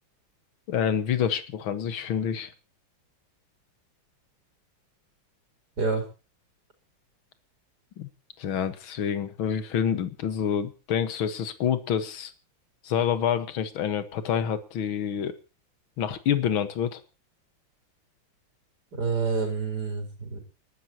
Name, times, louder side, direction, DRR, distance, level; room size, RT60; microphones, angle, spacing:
voice 1, 0.7-2.5 8.0-8.1 8.4-12.3 12.8-15.3 16.0-17.0, left 8 dB, 75° left, 12 dB, 2.1 m, -27 dB
voice 2, 18.9-20.4, right 4 dB, 45° right, 3 dB, 4.5 m, -28 dB
29.0 x 12.5 x 2.9 m, 0.32 s
omnidirectional pair, 2.2 m